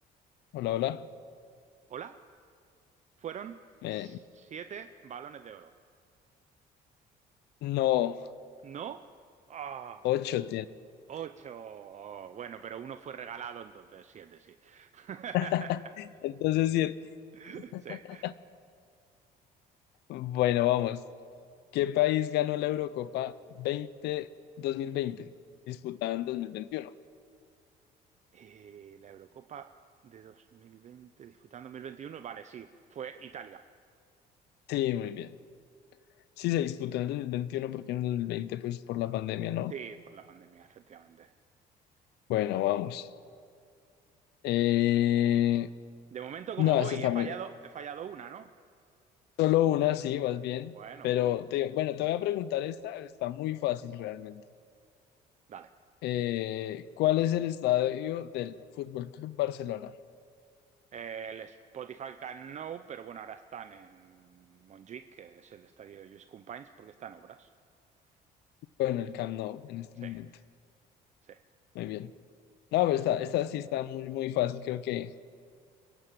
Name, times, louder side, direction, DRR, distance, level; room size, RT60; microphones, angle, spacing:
voice 1, 0.5-1.1 3.8-4.2 7.6-8.3 10.0-10.7 15.3-15.8 16.2-17.0 17.7-18.0 18.2-18.3 20.1-21.0 21.7-24.3 24.6-25.3 25.7-26.9 34.7-35.3 36.4-39.7 42.3-43.1 44.4-45.7 46.6-47.3 49.4-50.7 51.0-54.4 56.0-59.9 68.8-70.3 71.7-72.1 72.7-75.1, left 13 dB, 85° left, 0.7 m, -29 dB
voice 2, 1.9-2.2 3.2-3.6 3.9-5.7 8.6-9.1 9.5-10.1 11.1-15.9 17.3-18.3 28.3-29.7 30.0-33.6 39.7-41.3 46.1-48.5 50.7-51.4 55.5-55.7 60.9-67.5 70.0-70.2 71.2-71.4, right 8 dB, 45° right, 0.8 m, -43 dB
25.0 x 16.0 x 9.3 m
cardioid pair, 110°, 17 cm